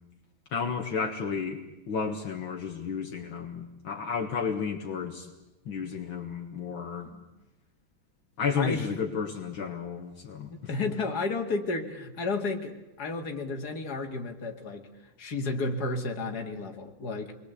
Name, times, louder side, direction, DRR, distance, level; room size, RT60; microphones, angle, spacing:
voice 1, 0.5-5.3 5.7-7.1 8.4-10.5, left 5 dB, 65° left, 2 dB, 2.4 m, -32 dB
voice 2, 10.5-14.9 15.2-17.3, left 3 dB, 45° left, 3 dB, 2.8 m, -32 dB
28.5 x 22.5 x 8.3 m, 0.98 s
omnidirectional pair, 2.4 m